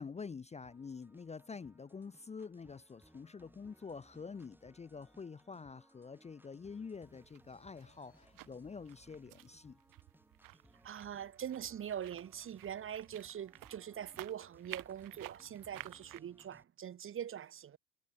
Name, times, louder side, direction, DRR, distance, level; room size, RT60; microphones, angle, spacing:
voice 1, 0.0-9.8, left 5 dB, 15° left, 0.9 m, -47 dB
sound 1, 0.6-16.6, right 1 dB, 5° right, 7.0 m, -66 dB
sound 2, 6.9-16.2, right 16 dB, 40° right, 1.9 m, -54 dB
sound 3, 7.5-10.0, left 6 dB, 80° left, 4.3 m, -73 dB
voice 2, 10.8-17.8, right 9 dB, 25° right, 1.1 m, -43 dB
figure-of-eight pair, 70°, 50 cm